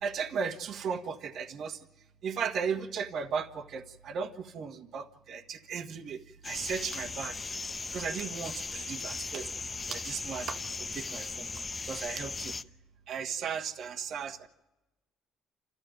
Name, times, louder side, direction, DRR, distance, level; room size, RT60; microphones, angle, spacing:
voice 1, 0.0-1.8 2.2-7.4 7.9-9.5 9.9-10.6 10.9-11.5 11.9-12.5 13.1-14.5, right 6 dB, 55° right, 7 dB, 1.6 m, -36 dB
sound 1, 6.4-12.6, left 4 dB, 25° left, 0.9 m, -38 dB
28.5 x 14.0 x 9.1 m, 1.1 s
cardioid pair, 110°, 0 cm